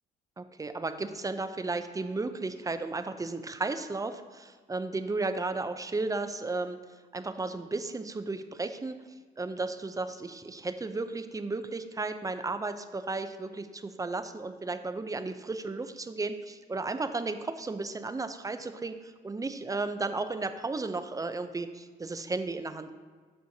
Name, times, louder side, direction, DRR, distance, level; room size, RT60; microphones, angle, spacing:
voice 1, 0.4-6.8 7.1-9.0 9.4-22.9, right 3 dB, 15° right, 9 dB, 0.5 m, -34 dB
13.0 x 4.5 x 2.8 m, 1.5 s
cardioid pair, 90°, 20 cm